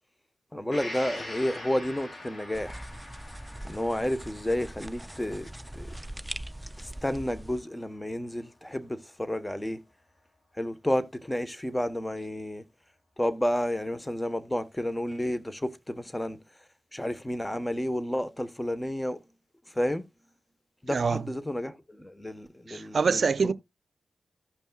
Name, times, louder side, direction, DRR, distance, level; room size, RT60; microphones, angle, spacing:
voice 1, 0.5-2.9 3.6-5.9 6.8-9.8 10.6-12.6 13.2-16.4 16.9-19.2 19.7-20.0 20.8-23.5, left 1 dB, 15° left, 1.1 m, -31 dB
Gong, 0.7-8.3 8.7-8.8, left 1 dB, 55° left, 3.1 m, -45 dB
sound 1, 2.5-7.6, right 1 dB, 10° right, 0.5 m, -41 dB
voice 2, 20.9-21.2 22.7-23.5, right 5 dB, 65° right, 0.5 m, -25 dB
16.0 x 5.4 x 2.3 m
cardioid pair, 40°, 0 cm